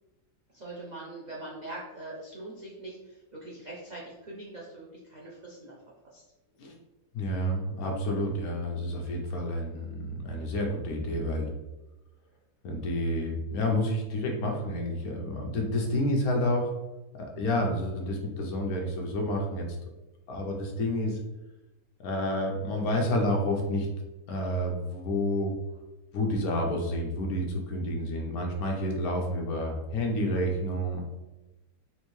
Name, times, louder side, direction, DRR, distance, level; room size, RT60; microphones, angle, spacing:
voice 1, 0.5-5.8 6.0-6.2, right 2 dB, 65° right, -5 dB, 0.4 m, -42 dB
voice 2, 7.1-11.5 12.6-16.7 17.4-19.7 20.3-21.2 22.0-23.9 24.3-25.5 26.1-31.0, left 1 dB, 70° left, 1 dB, 1.2 m, -29 dB
4.3 x 2.6 x 3.1 m, 1.0 s
omnidirectional pair, 1.7 m